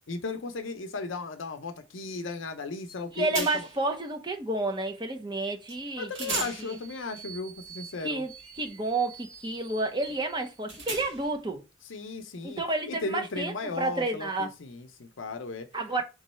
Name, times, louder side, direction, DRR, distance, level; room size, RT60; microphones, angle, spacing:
voice 1, 0.1-3.5 6.0-8.2 11.9-15.7, left 3 dB, 70° left, 0.6 m, -36 dB
sound 1, 2.9-3.0 3.3-3.9 5.7-5.8 6.1-11.4, right 4 dB, 70° right, 1.7 m, -39 dB
voice 2, 3.1-6.8 8.0-8.3 8.6-11.6 12.4-14.5 15.7-16.0, right 2 dB, 25° right, 0.7 m, -30 dB
3.8 x 3.0 x 4.2 m
head